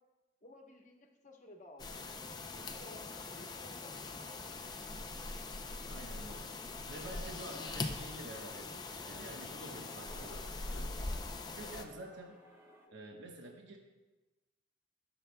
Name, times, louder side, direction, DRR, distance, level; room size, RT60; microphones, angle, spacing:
voice 1, 0.4-4.4 12.9-13.0, left 1 dB, 40° left, 2 dB, 1.1 m, -56 dB
sound 1, 1.8-11.8, left 3 dB, 20° left, 0.5 m, -42 dB
voice 2, 5.9-6.6 6.9-11.0 11.5-12.4 12.9-13.8, right 1 dB, 65° right, 1 dB, 1.1 m, -49 dB
sound 2, 7.0-12.9, right 1 dB, 10° right, 1.1 m, -59 dB
20.0 x 6.9 x 2.3 m, 1.2 s
head